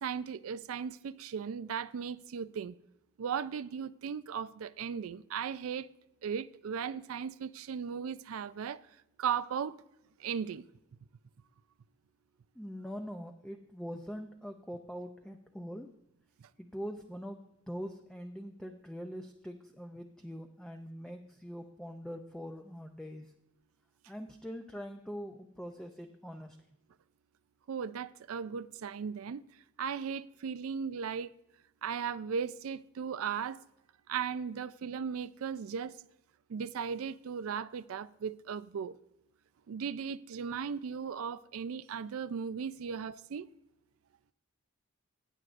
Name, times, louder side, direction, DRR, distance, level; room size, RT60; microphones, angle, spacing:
voice 1, 0.0-2.7 3.2-5.9 6.2-8.8 9.2-9.7 10.2-10.7 27.7-29.4 29.8-31.3 31.8-33.6 34.1-36.0 36.5-39.0 39.7-43.5, right 7 dB, 90° right, 0.4 m, -37 dB
voice 2, 12.6-15.9 16.6-23.3 24.1-26.6, equal, 5° left, 0.5 m, -43 dB
15.5 x 9.0 x 2.5 m
head